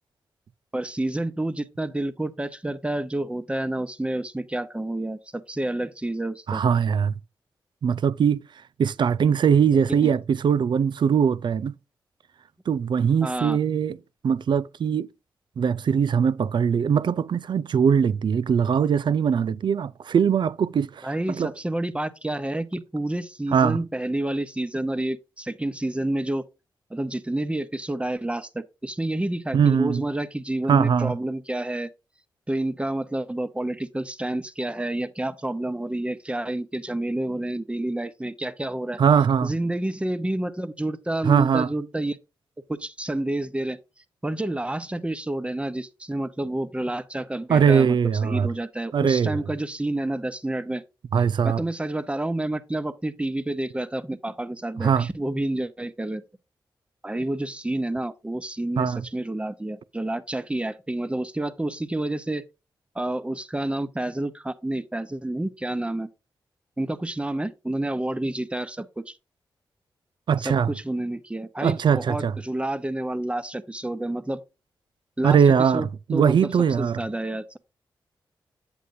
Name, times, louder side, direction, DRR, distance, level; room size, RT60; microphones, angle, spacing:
voice 1, 0.7-6.6 9.9-10.1 13.2-13.6 21.0-26.4 26.9-31.9 32.5-39.0 39.4-42.2 42.7-43.8 44.2-48.0 48.2-50.8 51.4-56.2 57.0-62.4 62.9-66.1 66.8-69.2 70.4-74.4 75.2-76.5 76.8-77.6, right 1 dB, 15° right, 0.9 m, -29 dB
voice 2, 6.5-7.1 7.8-8.4 8.8-11.8 12.7-14.0 14.2-15.1 15.6-21.5 23.5-23.8 29.5-30.1 30.7-31.1 39.0-39.5 41.2-41.7 47.5-48.5 48.9-49.4 51.1-51.6 54.8-55.1 58.8-59.1 70.3-70.7 71.6-72.3 75.2-77.0, right 7 dB, 60° right, 0.4 m, -21 dB
8.1 x 7.8 x 2.7 m
cardioid pair, 55°, 9 cm